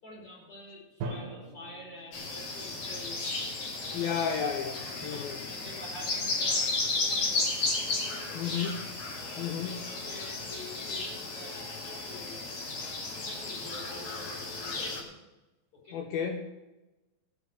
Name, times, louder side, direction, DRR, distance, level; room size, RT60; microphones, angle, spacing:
voice 1, 0.0-3.3 3.8-4.3 4.8-6.8 7.0-7.9 8.3-8.6 9.1-12.4 12.8-15.1 15.8-16.0, left 1 dB, 30° left, -3 dB, 5.4 m, -48 dB
Drum, 1.0-2.9, right 3 dB, 70° right, 3.2 m, -41 dB
sound 1, 2.1-15.0, left 3 dB, 50° left, 2.1 m, -34 dB
voice 2, 3.9-5.4 8.4-8.8 9.4-9.8 15.9-16.4, left 7 dB, 75° left, 4 dB, 2.3 m, -32 dB
16.5 x 6.2 x 6.5 m, 1.0 s
omnidirectional pair, 4.9 m